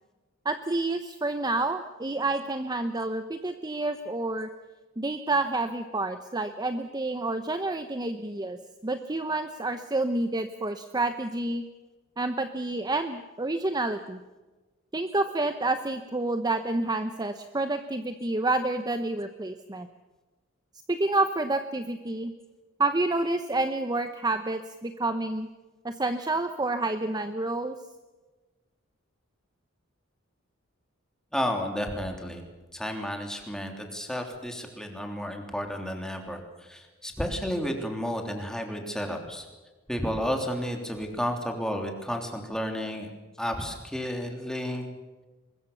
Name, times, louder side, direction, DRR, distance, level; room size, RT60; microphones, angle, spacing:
voice 1, 0.4-4.5 5.0-11.6 12.2-14.2 14.9-19.9 20.9-22.3 22.8-25.5 25.8-27.7, right 2 dB, 20° right, 9 dB, 0.9 m, -29 dB
voice 2, 31.3-32.4 32.7-39.4 39.9-43.1 43.4-44.9, equal, 5° left, 3 dB, 3.3 m, -32 dB
23.0 x 21.5 x 6.9 m, 1.2 s
head